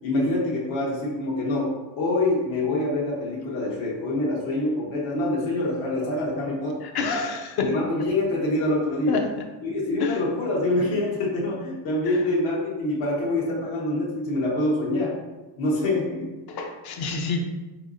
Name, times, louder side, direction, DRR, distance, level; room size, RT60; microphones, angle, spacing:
voice 1, 0.0-6.8 7.6-9.2 9.6-15.2 15.6-16.3, left 2 dB, 65° left, -5 dB, 1.3 m, -25 dB
voice 2, 6.8-7.7 9.1-9.2 10.0-10.2 16.5-17.4, left 4 dB, 50° left, 4 dB, 0.7 m, -27 dB
4.6 x 4.0 x 2.6 m, 1.1 s
cardioid pair, 140°, 49 cm